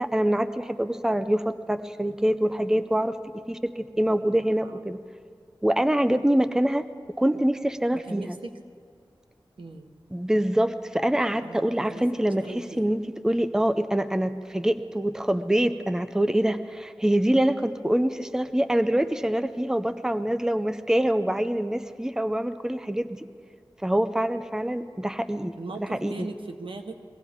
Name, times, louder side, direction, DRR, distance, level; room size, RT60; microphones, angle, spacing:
voice 1, 0.0-5.0 5.6-6.9 7.2-8.4 10.1-23.3 23.8-26.3, right 1 dB, 5° right, 10 dB, 0.6 m, -25 dB
voice 2, 8.1-8.5 9.6-9.9 11.4-12.0 12.4-12.9 25.6-26.9, right 3 dB, 80° right, 4 dB, 1.2 m, -39 dB
23.0 x 17.0 x 3.6 m, 2.2 s
wide cardioid pair, 65°, 9 cm